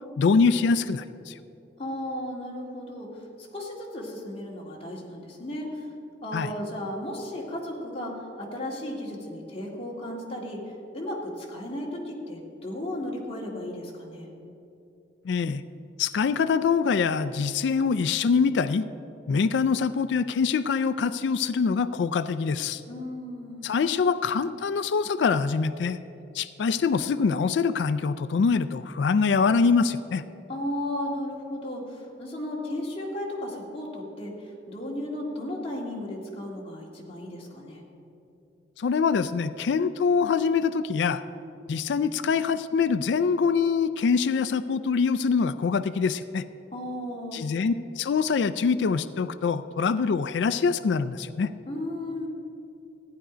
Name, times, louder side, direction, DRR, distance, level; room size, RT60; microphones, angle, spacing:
voice 1, 0.2-1.3 6.3-6.5 15.3-15.6 16.0-18.8 19.3-22.8 23.6-26.0 26.3-30.2 38.8-41.2 41.7-46.4 47.3-51.5, left 5 dB, 70° left, 14 dB, 0.4 m, -24 dB
voice 2, 1.8-5.9 6.2-10.6 10.9-14.3 22.9-23.7 30.5-37.8 46.7-47.4 51.7-52.3, left 1 dB, 30° left, -2 dB, 2.0 m, -35 dB
14.5 x 10.0 x 5.0 m, 2.8 s
head